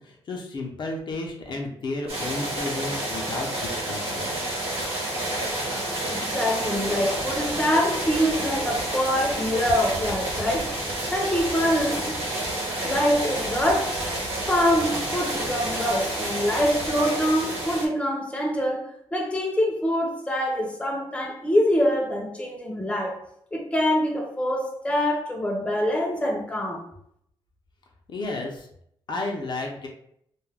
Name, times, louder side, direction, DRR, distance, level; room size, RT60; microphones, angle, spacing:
voice 1, 0.0-4.3 28.1-28.7 29.1-29.9, left 2 dB, 55° left, 0.6 m, -32 dB
sound 1, 2.1-17.9, right 1 dB, 85° right, 0.9 m, -29 dB
voice 2, 6.1-12.2 12.8-14.1 14.5-23.2 23.5-26.9, equal, 10° left, 0.6 m, -25 dB
2.3 x 2.1 x 3.3 m
cardioid pair, 95°, 10 cm